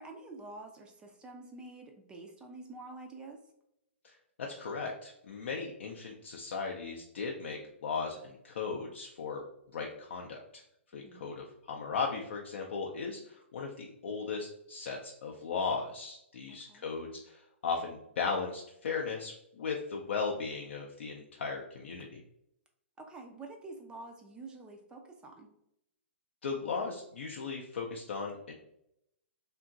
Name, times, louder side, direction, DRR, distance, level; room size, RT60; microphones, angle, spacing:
voice 1, 0.0-3.4 10.9-11.3 16.5-16.9 23.0-25.5, right 2 dB, 10° right, 2 dB, 0.3 m, -48 dB
voice 2, 4.0-9.4 9.7-10.6 10.9-22.2 26.4-28.5, left 5 dB, 60° left, 0 dB, 0.4 m, -37 dB
2.8 x 2.5 x 2.4 m, 0.78 s
figure-of-eight pair, 115°, 7 cm